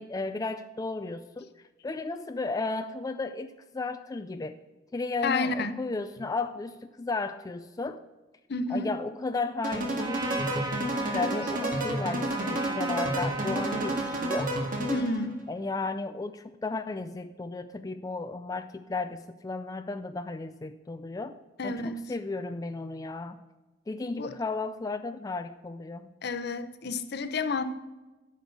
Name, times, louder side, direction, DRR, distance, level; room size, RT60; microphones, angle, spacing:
voice 1, 0.0-1.5 1.8-4.6 4.9-8.0 8.7-14.5 15.5-21.3 21.6-23.4 23.9-26.1, left 3 dB, 20° left, 9 dB, 0.3 m, -34 dB
voice 2, 5.2-5.7 8.5-8.9 14.9-15.4 21.6-22.0 24.2-24.3 26.2-27.6, left 3 dB, 60° left, 11 dB, 0.7 m, -30 dB
sound 1, 9.6-15.3, right 1 dB, 50° right, 2.0 m, -30 dB
Trumpet, 10.0-14.9, right 2 dB, 20° right, 0.9 m, -37 dB
10.0 x 5.3 x 8.1 m, 1.1 s
head